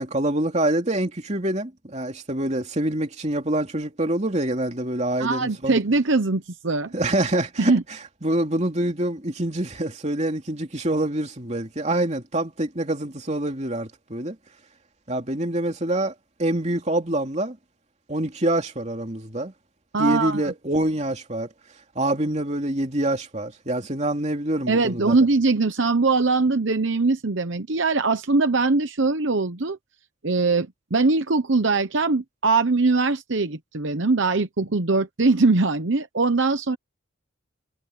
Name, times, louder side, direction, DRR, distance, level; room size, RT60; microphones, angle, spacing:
voice 1, 0.0-5.8 6.9-14.4 15.1-16.1 16.4-17.6 18.1-19.5 20.0-21.5 21.9-25.2, right 1 dB, 35° right, 2.8 m, -26 dB
voice 2, 5.2-6.9 7.6-7.8 19.9-20.5 24.7-29.8 30.2-36.8, right 3 dB, 65° right, 0.9 m, -21 dB
head